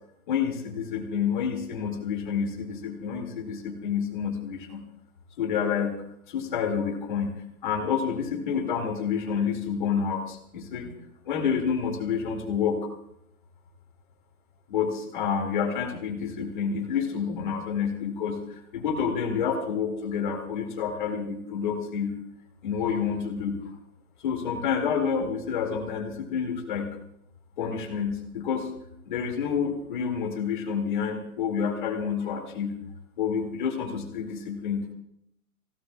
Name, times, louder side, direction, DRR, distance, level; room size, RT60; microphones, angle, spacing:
voice 1, 0.3-4.8 5.4-5.9 6.3-10.9 11.2-12.8 14.7-22.1 22.6-23.7 24.2-26.9 27.6-28.7 29.1-32.7 33.2-34.9, left 7 dB, 35° left, 2 dB, 2.2 m, -29 dB
27.5 x 16.5 x 2.3 m, 0.77 s
hypercardioid pair, 165°, 44 cm